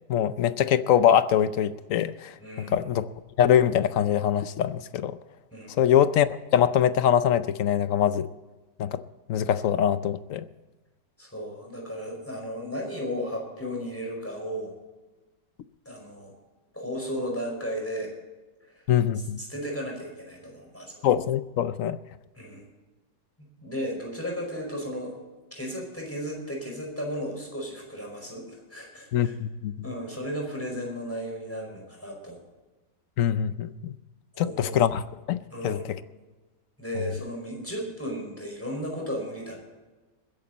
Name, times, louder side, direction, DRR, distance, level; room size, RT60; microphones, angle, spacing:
voice 1, 0.1-2.3 2.7-3.1 3.4-5.2 5.8-8.3 8.8-9.0 9.3-10.4 18.9-19.4 21.0-22.0 29.1-29.9 33.2-34.0 34.4-35.0 35.3-36.0, left 9 dB, 65° left, 14 dB, 0.8 m, -23 dB
voice 2, 2.4-2.7 5.5-5.8 11.2-14.7 15.8-16.3 16.7-18.1 18.7-18.8 19.4-21.0 22.3-22.6 23.4-25.2 25.5-29.3 29.8-32.4 34.3-34.8 35.5-36.0 36.8-39.6, equal, 5° left, 0 dB, 5.0 m, -34 dB
21.0 x 10.5 x 4.0 m, 1.2 s
omnidirectional pair, 1.9 m